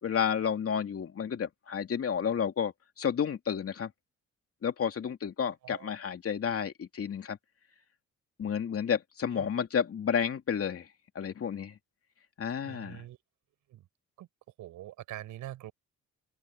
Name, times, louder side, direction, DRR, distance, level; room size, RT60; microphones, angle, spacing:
voice 1, 0.0-3.9 4.6-7.4 8.4-10.9 11.1-11.8 12.4-13.0, left 7 dB, 50° left, 2.9 m, -31 dB
voice 2, 12.6-13.2 13.7-13.9 14.2-14.3 14.6-15.7, right 14 dB, 85° right, 6.5 m, -44 dB
open air
cardioid pair, 90°, 30 cm